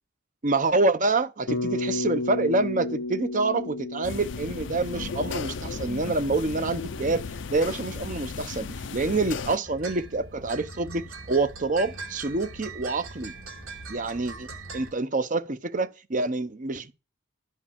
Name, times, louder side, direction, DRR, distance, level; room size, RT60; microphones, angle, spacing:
voice 1, 0.4-7.2 7.5-13.3 13.9-14.5 14.7-16.9, right 3 dB, 40° right, 0.8 m, -27 dB
Bass guitar, 1.5-5.8, left 2 dB, 90° left, 0.9 m, -32 dB
sound 1, 4.0-9.6, left 5 dB, 65° left, 0.5 m, -35 dB
sound 2, 9.6-14.9, right 3 dB, 90° right, 2.5 m, -41 dB
12.0 x 4.7 x 7.4 m
head